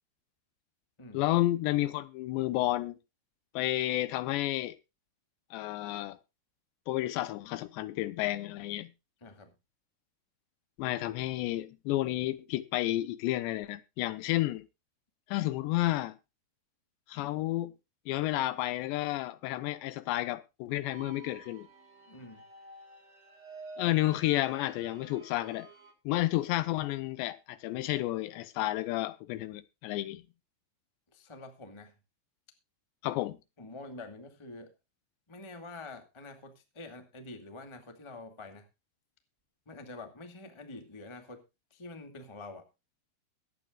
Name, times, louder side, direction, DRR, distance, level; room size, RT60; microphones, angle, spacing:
voice 1, 1.1-3.0 3.5-4.8 5.5-6.2 6.9-8.9 10.8-14.7 15.3-16.2 17.1-17.7 18.1-21.7 23.8-25.7 26.1-30.2 33.0-33.4, left 16 dB, 85° left, 3.0 m, -31 dB
voice 2, 9.2-9.5 22.1-22.4 31.1-31.9 33.6-34.7 35.3-38.7 39.6-41.4 41.7-42.7, left 2 dB, 50° left, 0.3 m, -46 dB
sound 1, 20.9-25.9, right 3 dB, 65° right, 7.9 m, -51 dB
22.5 x 9.0 x 2.4 m
omnidirectional pair, 5.1 m